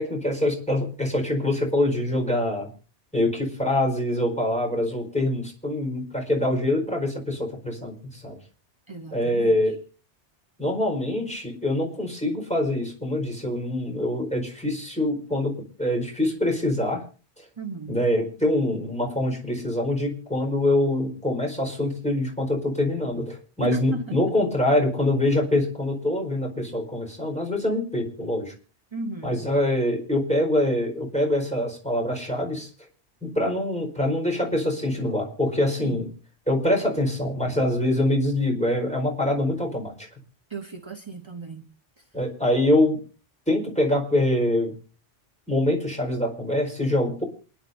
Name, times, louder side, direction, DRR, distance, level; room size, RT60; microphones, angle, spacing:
voice 1, 0.0-2.7 3.1-8.4 9.1-9.8 10.6-17.0 17.4-17.5 17.9-28.5 29.2-32.7 33.2-36.1 36.5-40.1 42.1-43.0 43.5-44.7 45.5-47.2, left 1 dB, 5° left, 0 dB, 4.6 m, -24 dB
voice 2, 8.9-9.6 17.6-18.0 23.6-24.2 28.9-29.4 35.8-36.0 40.5-41.7 42.0-42.1, right 2 dB, 25° right, 5 dB, 1.1 m, -35 dB
28.0 x 10.5 x 2.7 m, 0.36 s
omnidirectional pair, 1.2 m